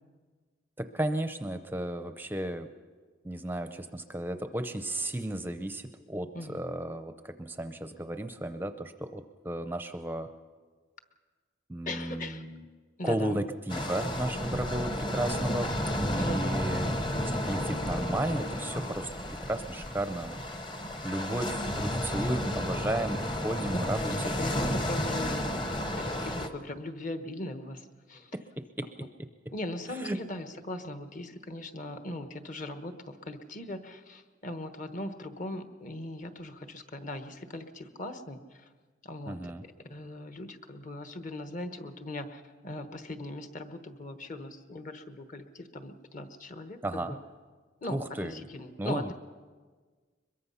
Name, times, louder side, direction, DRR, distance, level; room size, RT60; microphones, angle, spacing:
voice 1, 0.8-2.7 3.2-10.3 11.7-12.6 13.0-16.9 17.2-19.1 19.4-20.4 21.0-24.5 28.3-28.9 29.9-30.2 39.3-39.6 46.8-47.2 47.9-48.5 48.8-49.1, right 1 dB, 10° right, 9 dB, 0.6 m, -34 dB
voice 2, 11.9-12.4 13.0-13.4 16.2-16.6 24.1-28.3 29.5-38.7 39.0-39.5 39.9-47.2 47.8-49.1, left 1 dB, 40° left, 8 dB, 1.2 m, -39 dB
sound 1, 13.7-26.5, left 1 dB, 25° left, 1.1 m, -32 dB
23.0 x 22.0 x 5.7 m, 1.5 s
head